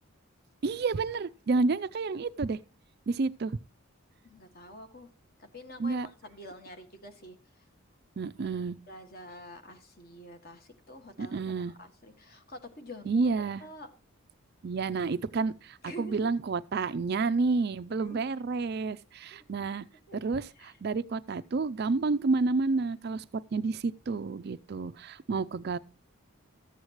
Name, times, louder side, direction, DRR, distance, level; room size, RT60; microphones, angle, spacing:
voice 1, 0.6-2.6 3.1-3.6 5.8-6.1 8.2-8.8 11.2-11.7 13.1-13.6 14.6-19.9 20.1-25.8, right 4 dB, 45° right, 0.4 m, -30 dB
voice 2, 4.2-5.1 5.4-7.4 8.4-8.5 8.9-13.3 13.6-13.9 15.8-16.3 17.9-18.2 19.3-19.4 20.1-20.2 20.6-20.7, left 1 dB, 45° left, 1.7 m, -47 dB
14.0 x 8.0 x 3.0 m
head